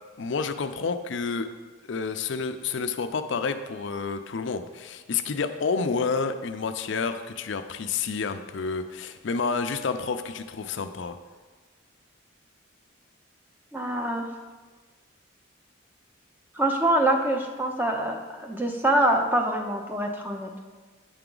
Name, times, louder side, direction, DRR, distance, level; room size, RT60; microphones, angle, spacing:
voice 1, 0.2-1.5 1.9-11.2, left 5 dB, 60° left, 9 dB, 0.4 m, -29 dB
voice 2, 13.7-14.3 16.5-20.6, right 1 dB, 10° right, 2 dB, 0.6 m, -25 dB
8.7 x 5.8 x 3.8 m, 1.4 s
head